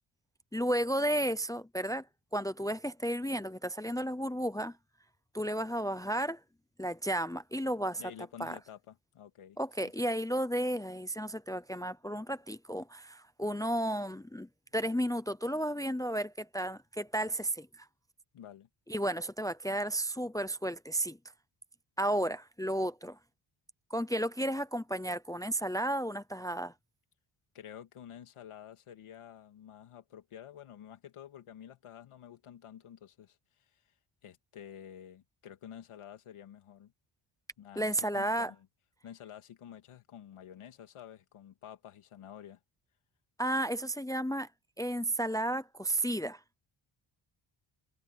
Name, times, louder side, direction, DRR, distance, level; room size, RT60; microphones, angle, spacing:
voice 1, 0.5-2.1 2.3-4.8 5.3-6.4 6.8-8.0 8.4-8.6 9.6-17.9 18.9-21.2 22.0-23.2 23.9-26.7 37.8-38.5 43.4-44.5 44.8-46.4, right 1 dB, 5° left, 0.5 m, -33 dB
voice 2, 8.0-9.6 9.8-9.9 18.3-18.7 27.5-33.8 34.2-36.9 37.6-38.7 39.0-42.6, left 9 dB, 80° left, 2.5 m, -50 dB
wide cardioid pair, 145°, 50 cm